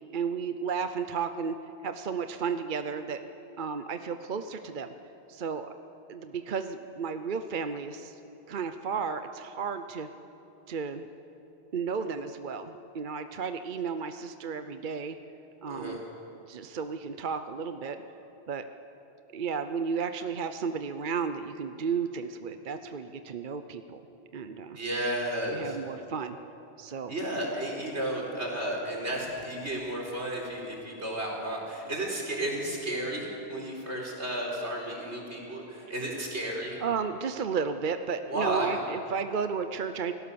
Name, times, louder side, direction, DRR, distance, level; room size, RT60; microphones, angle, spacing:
voice 1, 0.1-1.6 1.8-3.2 3.6-4.9 5.3-5.7 6.1-8.2 8.5-10.1 10.7-11.1 11.7-15.2 15.6-16.0 16.5-18.0 18.5-18.6 19.3-24.0 24.3-24.8 25.4-26.4 26.8-27.1 36.1-36.2 36.8-40.1, right 6 dB, 50° right, 9 dB, 0.9 m, -33 dB
voice 2, 15.7-16.0 24.7-25.8 27.1-36.8 38.3-38.8, right 1 dB, 80° right, -1 dB, 4.5 m, -33 dB
29.0 x 17.5 x 6.9 m, 3.0 s
omnidirectional pair, 1.1 m